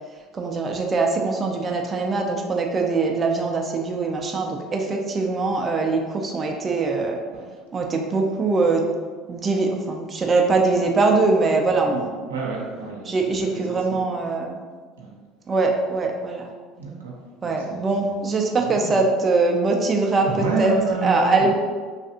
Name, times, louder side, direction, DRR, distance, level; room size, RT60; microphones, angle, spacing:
voice 1, 0.3-7.2 7.7-8.8 9.3-12.1 13.1-14.6 15.5-16.5 17.4-20.3 20.6-20.7 21.0-21.5, right 3 dB, 30° right, 2 dB, 0.4 m, -22 dB
voice 2, 12.3-14.0 15.0-15.1 16.8-18.2 18.6-19.0 20.2-21.5, right 3 dB, 90° right, -3 dB, 0.6 m, -30 dB
3.3 x 2.4 x 2.8 m, 1.6 s
hypercardioid pair, 70°, 0 cm